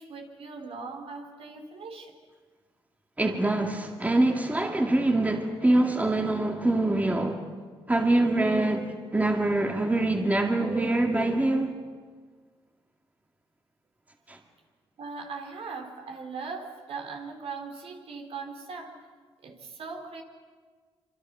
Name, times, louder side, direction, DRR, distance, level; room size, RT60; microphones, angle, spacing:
voice 1, 0.0-2.1 15.0-18.9 19.4-20.2, right 4 dB, 65° right, 3.7 m, -39 dB
voice 2, 3.2-7.5 7.9-11.8 14.3-14.4, right 2 dB, 15° right, 2.2 m, -24 dB
26.0 x 25.5 x 6.2 m
cardioid pair, 95°, 11 cm